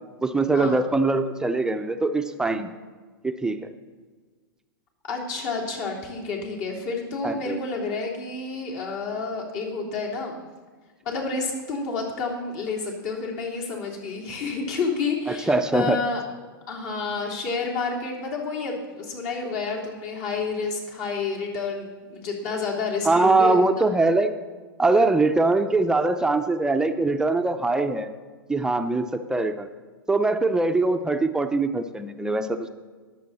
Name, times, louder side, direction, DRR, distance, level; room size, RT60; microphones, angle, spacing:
voice 1, 0.2-2.7 3.2-3.6 7.2-7.6 15.3-16.0 23.0-24.3 24.8-28.1 28.5-29.7 30.1-32.7, right 3 dB, 5° right, 7 dB, 0.7 m, -22 dB
voice 2, 5.1-10.4 11.0-16.2 16.7-23.6, left 4 dB, 50° left, -2 dB, 3.4 m, -29 dB
20.5 x 7.7 x 4.2 m, 1.5 s
hypercardioid pair, 110°, 12 cm